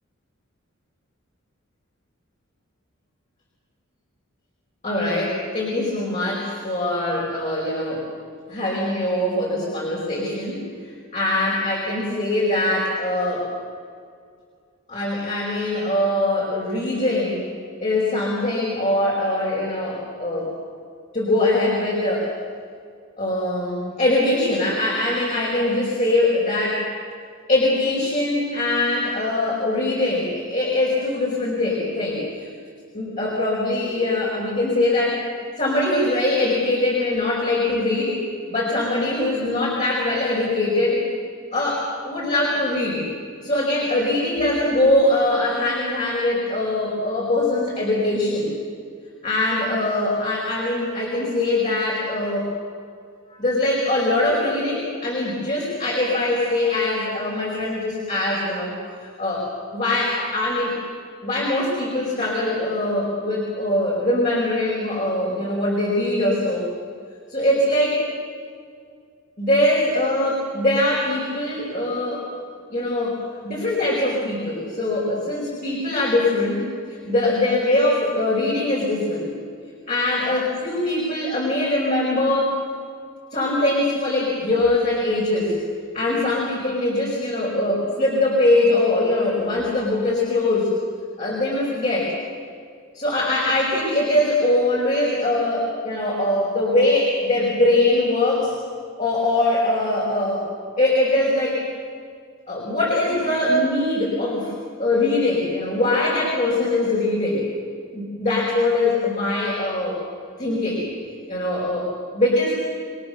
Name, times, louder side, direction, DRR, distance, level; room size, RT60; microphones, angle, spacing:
voice 1, 4.8-8.0 8.5-13.5 14.9-17.5 17.8-20.5 21.1-22.3 23.2-26.8 27.5-32.5 32.9-35.2 35.6-38.2 38.5-41.0 41.5-43.0 43.4-48.5 49.2-52.5 53.3-58.7 59.0-60.8 61.2-66.7 67.3-68.0 69.4-72.3 72.7-79.3 79.9-82.5 83.3-85.6 85.9-90.7 91.2-92.1 92.9-98.5 99.0-100.5 100.8-101.6 102.5-104.5 104.8-107.4 107.9-110.0 110.4-110.9 111.3-111.9 112.1-112.7, left 1 dB, 35° left, -5 dB, 5.0 m, -22 dB
28.0 x 22.0 x 6.7 m, 2.2 s
head